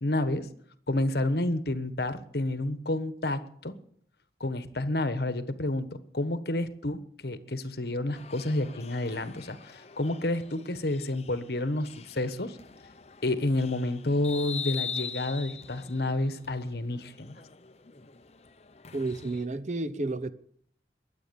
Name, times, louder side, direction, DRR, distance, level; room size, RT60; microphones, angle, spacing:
voice 1, 0.0-0.5 0.9-3.7 4.4-5.9 6.1-12.6 13.2-17.4, left 2 dB, 65° left, 1.3 m, -30 dB
sound 1, 8.1-19.4, left 7 dB, 35° left, 0.7 m, -43 dB
voice 2, 18.9-20.3, right 2 dB, 40° right, 0.8 m, -31 dB
21.5 x 8.5 x 7.0 m
head